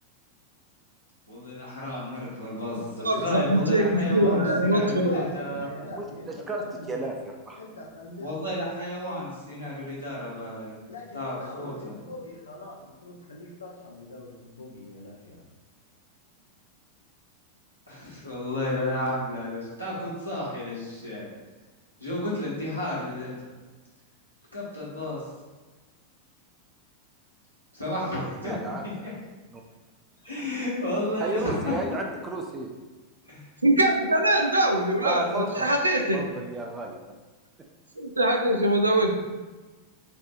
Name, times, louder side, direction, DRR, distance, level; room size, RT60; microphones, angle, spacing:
voice 1, 1.3-5.7 8.2-12.0 17.9-21.3 22.0-23.3 24.5-25.2 27.7-28.5 29.0-29.1 30.2-31.7 33.2-33.4, left 1 dB, 90° left, -8 dB, 1.5 m, -32 dB
voice 2, 3.0-5.1 33.6-36.3 38.0-39.1, right 1 dB, 80° right, 4 dB, 0.5 m, -23 dB
voice 3, 4.2-7.0 7.6-8.3 10.9-12.7 13.0-15.4, left 1 dB, 75° left, -2 dB, 0.6 m, -38 dB
voice 4, 5.9-7.6 28.4-29.1 29.5-29.6 31.2-32.7 35.0-35.8 36.1-37.0, right 2 dB, 20° right, 1 dB, 0.5 m, -33 dB
6.7 x 2.6 x 2.5 m, 1.2 s
figure-of-eight pair, 90°, 0 cm